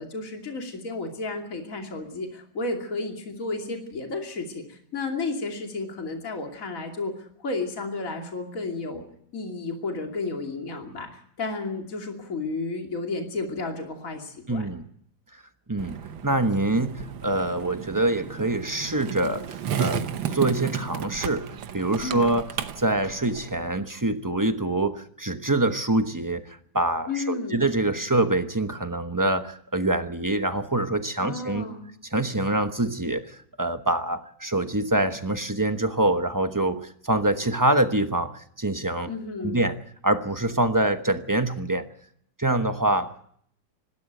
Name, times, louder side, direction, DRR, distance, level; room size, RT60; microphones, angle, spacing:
voice 1, 0.0-9.0 9.3-11.1 11.4-14.7 22.0-22.3 27.1-27.6 31.2-31.9 39.1-39.6, left 3 dB, 45° left, 2 dB, 3.1 m, -32 dB
voice 2, 14.5-14.8 15.7-16.0 16.2-20.0 20.3-22.5 22.8-31.7 32.1-39.1 39.4-39.8 40.0-41.8 42.4-43.1, right 2 dB, 15° right, 8 dB, 0.7 m, -25 dB
Skateboard, 15.8-23.8, right 8 dB, 85° right, 1.8 m, -33 dB
25.5 x 13.0 x 9.1 m, 0.66 s
omnidirectional pair, 2.1 m